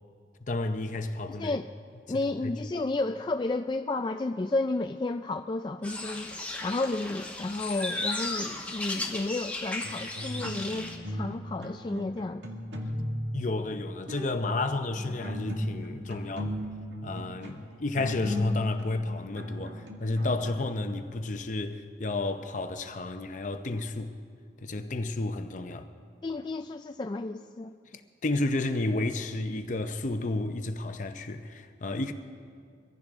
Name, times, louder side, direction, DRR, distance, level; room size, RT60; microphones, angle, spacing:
voice 1, 0.5-1.6 2.1-2.5 13.3-16.6 17.0-24.1 24.6-25.9 27.9-32.1, left 2 dB, 45° left, 0.7 m, -31 dB
voice 2, 2.1-12.4 26.2-27.7, left 2 dB, 25° left, 0.3 m, -32 dB
sound 1, 5.8-11.0, left 2 dB, 10° left, 1.4 m, -35 dB
sound 2, 9.8-11.4 11.6-13.4 13.9-14.4 14.9-20.5, equal, 85° right, 1.9 m, -36 dB
24.0 x 15.5 x 3.7 m
head